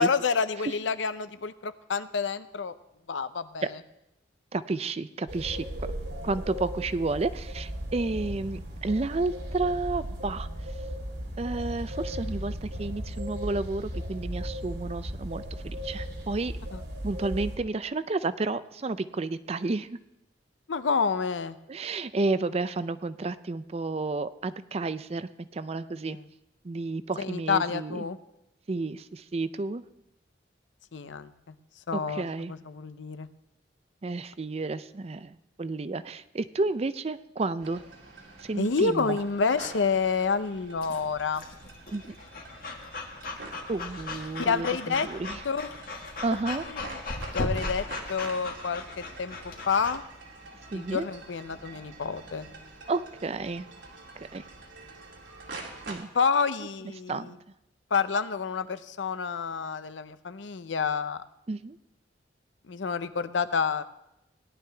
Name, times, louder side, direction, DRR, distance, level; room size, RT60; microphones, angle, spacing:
voice 1, 0.0-2.7 3.1-3.7 16.7-16.8 20.7-21.6 26.1-26.2 27.2-28.2 30.9-31.5 31.9-33.3 38.6-41.4 44.4-45.1 45.4-45.7 46.7-47.0 47.3-50.0 50.7-52.5 56.1-57.4 57.9-61.2 62.7-63.8, left 5 dB, 90° left, 13 dB, 0.6 m, -29 dB
voice 2, 4.5-5.9 6.2-10.5 11.4-16.5 17.0-20.0 21.7-26.2 26.6-28.0 28.7-29.8 31.9-32.5 34.0-37.8 38.4-39.2 41.9-42.2 43.7-45.4 46.2-46.6 50.7-51.1 52.9-53.7 54.2-54.4 55.9-56.1 57.1-57.3 61.5-61.8, right 3 dB, 35° right, 14 dB, 0.4 m, -31 dB
sound 1, 5.3-17.6, equal, 70° right, 2.4 m, -36 dB
sound 2, 37.6-55.9, right 3 dB, 90° right, 2.7 m, -47 dB
Breathing / Dog, 40.8-50.0, left 2 dB, 50° left, 1.5 m, -38 dB
18.0 x 11.0 x 3.4 m, 0.88 s
head